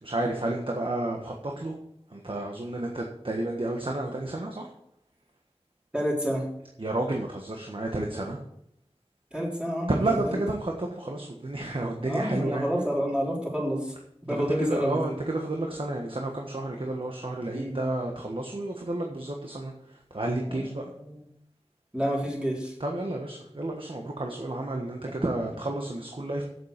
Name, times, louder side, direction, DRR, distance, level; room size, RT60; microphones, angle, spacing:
voice 1, 0.0-1.8 2.1-4.7 6.8-8.4 9.9-12.7 14.3-20.9 22.8-26.4, right 2 dB, 55° right, 1 dB, 1.4 m, -31 dB
voice 2, 5.9-6.4 9.3-10.4 12.1-13.9 14.3-15.0 17.5-17.8 20.5-21.2 21.9-22.7, equal, 10° right, -3 dB, 4.0 m, -29 dB
8.5 x 7.7 x 6.7 m, 0.76 s
wide cardioid pair, 45°, 11 cm